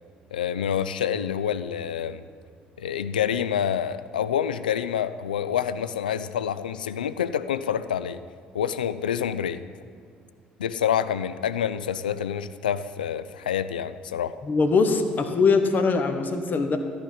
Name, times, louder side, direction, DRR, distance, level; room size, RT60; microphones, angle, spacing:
voice 1, 0.3-2.2 2.8-8.2 8.5-9.6 10.6-14.4, left 9 dB, 80° left, 14 dB, 0.3 m, -27 dB
voice 2, 14.4-16.8, left 4 dB, 40° left, 7 dB, 1.1 m, -22 dB
14.0 x 5.1 x 8.9 m, 2.2 s
figure-of-eight pair, 50°, 5 cm